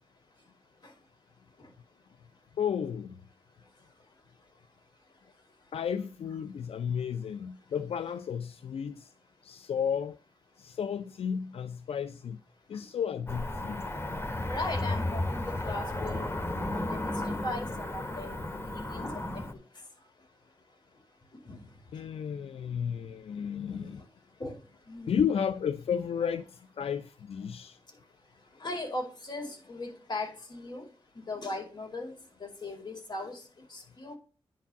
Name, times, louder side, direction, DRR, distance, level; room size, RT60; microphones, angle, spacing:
voice 1, 2.6-3.2 5.7-9.1 9.4-10.2 10.6-12.4 12.7-13.9 21.9-24.1 25.1-27.8, left 7 dB, 75° left, 0.5 m, -33 dB
Cricket / Motor vehicle (road), 13.3-19.5, left 1 dB, 25° left, 2.2 m, -33 dB
voice 2, 14.5-16.3 16.9-17.1 17.4-18.6 18.9-19.3 21.4-21.6 23.7-23.9 24.4-24.5 24.9-25.2 28.6-30.9 31.1-32.1 32.4-33.4 33.7-34.2, left 2 dB, 45° left, 4.9 m, -38 dB
9.9 x 4.8 x 7.0 m
cardioid pair, 80°, 10 cm